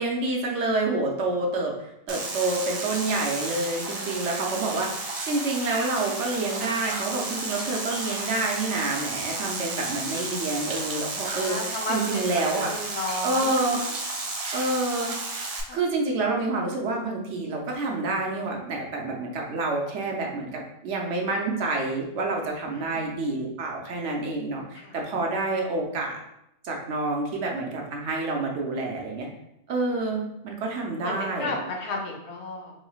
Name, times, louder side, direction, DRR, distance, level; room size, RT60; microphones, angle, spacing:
voice 1, 0.0-12.8 13.2-13.9 14.5-15.1 15.7-26.2 26.6-29.3 29.7-31.6, right 2 dB, 75° right, 0 dB, 0.9 m, -28 dB
sound 1, 2.1-15.6, right 3 dB, 55° right, 0.4 m, -32 dB
voice 2, 11.3-12.3 12.5-13.5 15.7-15.8 22.7-23.1 24.7-25.0 31.0-32.7, left 2 dB, 65° left, 0 dB, 1.0 m, -33 dB
4.0 x 3.1 x 2.3 m, 0.81 s
omnidirectional pair, 1.2 m